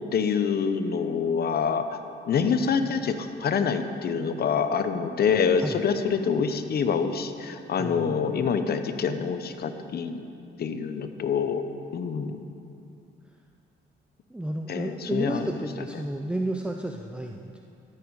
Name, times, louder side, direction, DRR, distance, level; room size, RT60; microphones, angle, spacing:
voice 1, 0.1-2.0 2.3-10.2 10.6-11.6 11.9-12.4 14.7-15.5, left 6 dB, 55° left, 9 dB, 0.8 m, -26 dB
voice 2, 7.8-8.6 14.3-17.6, right 1 dB, 5° right, 3 dB, 0.5 m, -32 dB
13.0 x 8.7 x 4.8 m, 2.6 s
cardioid pair, 90°, 20 cm